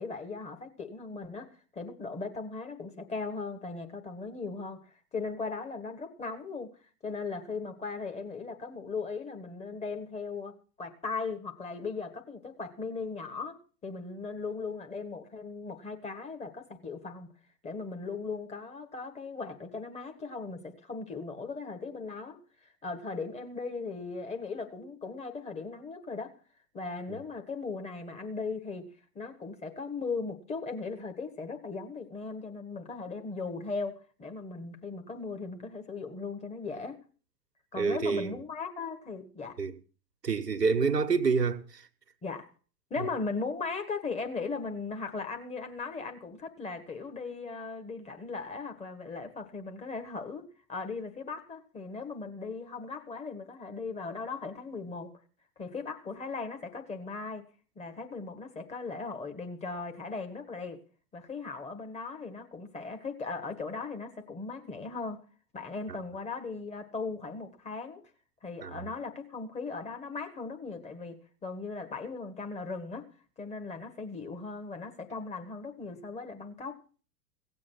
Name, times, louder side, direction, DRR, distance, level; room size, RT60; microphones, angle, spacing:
voice 1, 0.0-6.7 7.0-17.3 17.6-26.3 26.7-28.9 29.1-37.0 37.7-39.6 42.2-42.5 42.9-55.1 55.6-57.5 57.7-60.8 61.1-65.2 65.5-68.0 68.4-73.1 73.4-76.8, left 4 dB, 15° left, 1.5 m, -38 dB
voice 2, 37.8-38.3 39.6-39.7 40.2-41.8 43.0-43.1 68.6-68.7, right 5 dB, 80° right, 1.3 m, -27 dB
17.0 x 7.7 x 6.3 m
figure-of-eight pair, 100°, 48 cm